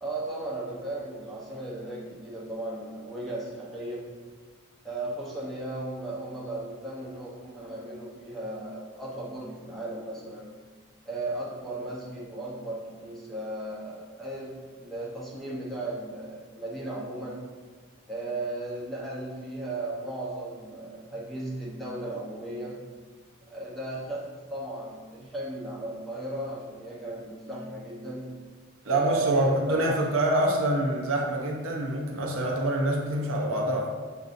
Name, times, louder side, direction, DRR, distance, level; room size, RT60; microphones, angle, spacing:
voice 1, 0.0-4.1 4.8-10.6 11.1-17.5 18.1-22.9 23.5-28.5 28.8-30.2, right 2 dB, ahead, -6 dB, 0.7 m, -36 dB
voice 2, 28.8-33.9, right 1 dB, 75° right, 0 dB, 0.7 m, -26 dB
6.7 x 2.6 x 2.5 m, 1.5 s
head